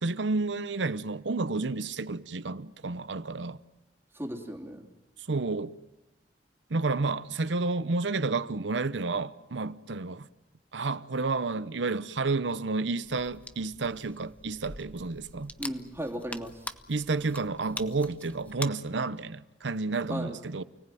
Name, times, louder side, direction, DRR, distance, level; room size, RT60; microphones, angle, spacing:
voice 1, 0.0-3.6 5.3-5.7 6.7-10.3 10.7-15.5 16.9-20.6, right 3 dB, 80° right, 0.8 m, -30 dB
voice 2, 4.1-4.9 15.6-16.7 20.1-20.4, equal, 15° right, 3.1 m, -36 dB
sound 1, 13.0-18.7, left 2 dB, 10° left, 0.9 m, -44 dB
29.0 x 19.0 x 9.2 m
head